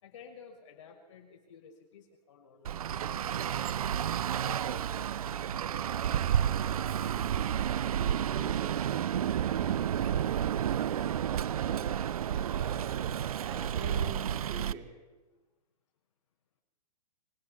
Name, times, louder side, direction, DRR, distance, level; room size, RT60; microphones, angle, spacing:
voice 1, 0.0-3.9 4.3-7.2, left 6 dB, 45° left, 1 dB, 6.1 m, -53 dB
Traffic noise roadway noise, 2.6-14.7, right 9 dB, 60° right, 0.6 m, -31 dB
voice 2, 8.3-8.9 9.4-11.1 11.5-11.9 12.3-13.1 13.4-15.2, right 4 dB, 20° right, 1 dB, 3.2 m, -46 dB
25.0 x 18.5 x 5.9 m, 1.1 s
hypercardioid pair, 170°, 21 cm